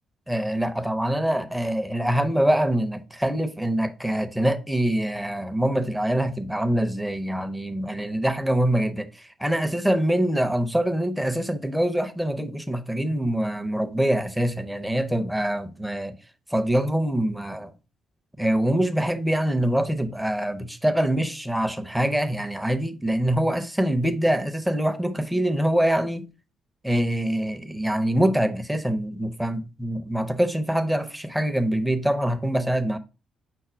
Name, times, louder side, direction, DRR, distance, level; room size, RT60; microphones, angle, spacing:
voice 1, 0.3-9.1 9.4-16.2 16.5-17.7 18.4-26.3 26.8-33.0, right 1 dB, 5° right, 0.6 m, -24 dB
5.7 x 2.1 x 4.3 m
cardioid pair, 90°, 0 cm